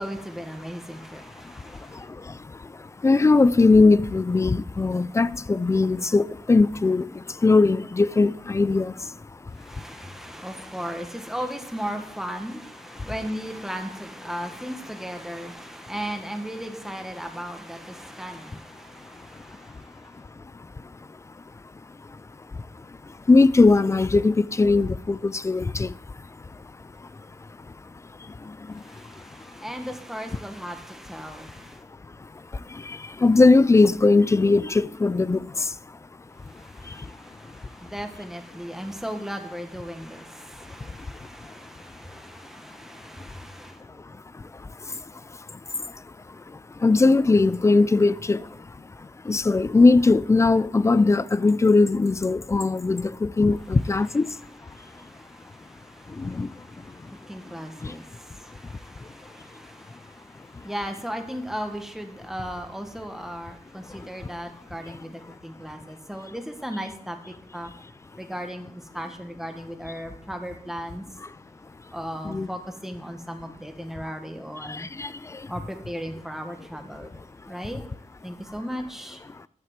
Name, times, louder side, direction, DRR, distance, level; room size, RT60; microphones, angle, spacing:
voice 1, 0.0-2.0 9.6-19.7 28.8-31.8 36.5-43.8 54.7-60.2 60.6-67.2 67.5-67.7 68.2-71.0 71.9-74.9 75.5-77.1 77.5-77.8 78.2-79.2, equal, 5° right, 1.4 m, -36 dB
voice 2, 1.4-9.2 13.0-13.1 20.4-21.0 22.1-22.2 22.5-26.5 27.0-27.8 28.2-29.2 30.3-30.4 32.2-36.0 36.8-37.2 40.9-41.1 44.0-45.0 45.5-54.4 56.1-57.1 57.8-58.0 58.6-58.7 59.0-59.1 60.5-60.6 63.9-64.3 64.9-65.0 65.3-65.4 71.2-71.3 72.2-72.5 74.6-75.5 76.6-76.7 77.6-77.8, left 3 dB, 20° left, 0.3 m, -22 dB
11.0 x 5.7 x 7.3 m
wide cardioid pair, 125°, 13 cm